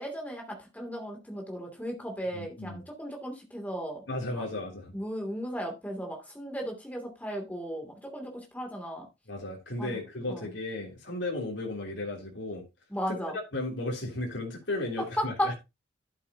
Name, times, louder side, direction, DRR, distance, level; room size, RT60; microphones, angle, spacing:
voice 1, 0.0-4.0 4.4-4.5 4.9-9.0 9.8-10.0 10.3-10.4 12.9-13.3 15.2-15.6, equal, 10° left, 2.8 m, -35 dB
voice 2, 2.3-2.8 4.1-4.9 9.3-12.6 13.1-13.2 13.5-15.5, left 2 dB, 70° left, 3.2 m, -35 dB
11.5 x 8.5 x 2.9 m
head